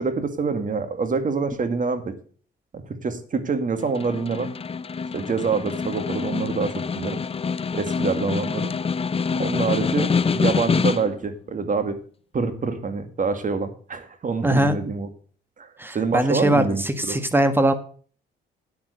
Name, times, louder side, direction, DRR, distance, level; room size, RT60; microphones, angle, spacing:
voice 1, 0.0-2.1 2.7-4.5 5.1-7.2 7.7-8.7 9.4-12.0 12.3-15.1 15.6-17.2, right 4 dB, 40° right, 9 dB, 2.1 m, -26 dB
Snare drum, 3.8-11.3, left 5 dB, 30° left, 0.6 m, -26 dB
voice 2, 14.4-14.8 15.8-17.7, right 1 dB, 10° right, 10 dB, 1.6 m, -21 dB
9.6 x 8.6 x 6.5 m, 0.43 s
cardioid pair, 90°, 20 cm